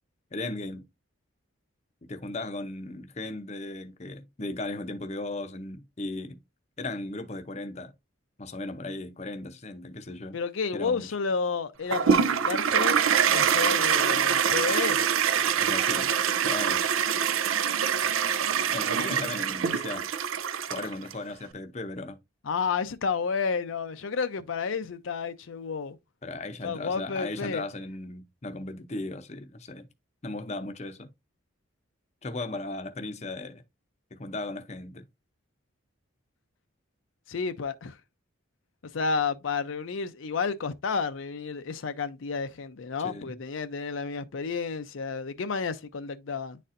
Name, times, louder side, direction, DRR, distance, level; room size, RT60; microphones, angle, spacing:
voice 1, 0.3-0.9 2.1-6.4 6.8-7.9 8.4-10.4 10.7-11.1 15.6-16.1 16.4-16.8 18.7-20.1 20.7-22.2 26.2-29.9 30.2-31.1 32.2-33.6 34.1-35.0 43.0-43.4, left 2 dB, 35° left, 0.6 m, -36 dB
voice 2, 10.3-13.0 13.3-15.0 22.4-26.0 26.6-27.6 37.3-38.0 38.8-46.6, left 5 dB, 70° left, 0.5 m, -31 dB
Toilet flush, 11.9-21.1, right 7 dB, 85° right, 0.5 m, -25 dB
9.9 x 4.1 x 2.5 m
head